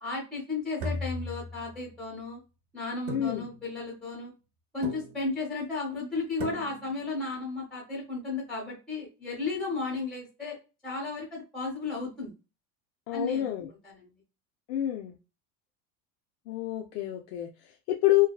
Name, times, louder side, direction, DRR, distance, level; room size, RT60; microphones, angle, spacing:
voice 1, 0.0-2.4 2.7-4.3 4.7-10.6 10.8-12.3 13.1-13.6 13.8-14.1, left 3 dB, ahead, 0.7 m, -34 dB
sound 1, 0.8-2.0 3.1-3.9 4.8-5.4 6.4-7.1, equal, 60° right, 0.8 m, -38 dB
voice 2, 3.1-3.5 13.1-13.7 14.7-15.2 16.5-18.3, left 14 dB, 85° left, 0.5 m, -28 dB
2.6 x 2.2 x 2.2 m
supercardioid pair, 135°, 46 cm